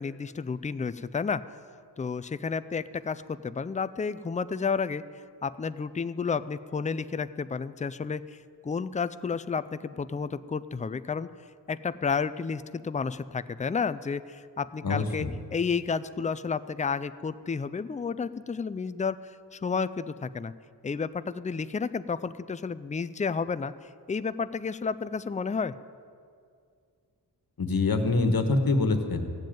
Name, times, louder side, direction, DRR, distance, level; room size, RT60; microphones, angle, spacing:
voice 1, 0.0-1.4 2.0-5.0 5.4-8.2 8.6-11.3 11.7-20.5 20.8-25.7, left 5 dB, 20° left, 15 dB, 0.4 m, -31 dB
voice 2, 14.8-15.3 27.6-29.5, left 3 dB, 55° left, 6 dB, 1.5 m, -25 dB
16.0 x 7.6 x 9.1 m, 2.2 s
wide cardioid pair, 100°, 42 cm